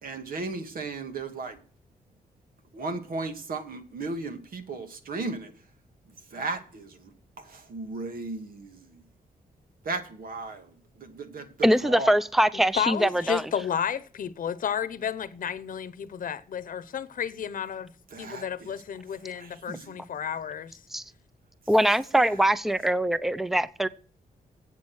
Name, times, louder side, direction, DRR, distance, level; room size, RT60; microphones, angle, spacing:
voice 1, 0.0-1.6 2.7-5.5 6.3-7.1 7.4-9.0 9.8-12.2 18.1-18.7 19.3-19.9, right 3 dB, 75° right, 2.1 m, -36 dB
voice 2, 11.6-13.4 20.9-21.0 21.7-23.9, right 1 dB, ahead, 0.6 m, -23 dB
voice 3, 12.5-17.9 18.2-20.8, left 8 dB, 65° left, 0.9 m, -32 dB
8.3 x 7.6 x 6.4 m
cardioid pair, 80°, 15 cm